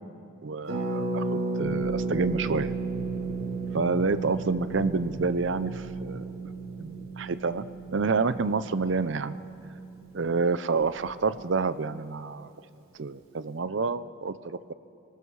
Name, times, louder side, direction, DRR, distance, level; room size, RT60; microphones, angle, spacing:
voice 1, 0.4-2.7 3.7-6.2 6.8-7.6 7.9-9.4 10.1-12.5 13.0-14.7, right 4 dB, 65° right, 14 dB, 0.6 m, -28 dB
Harp, 0.7-10.3 10.5-10.6 10.8-11.1, right 3 dB, 90° right, 4.3 m, -33 dB
sound 1, 1.6-11.4, right 1 dB, 40° right, 1.0 m, -45 dB
29.5 x 19.5 x 4.8 m, 2.8 s
head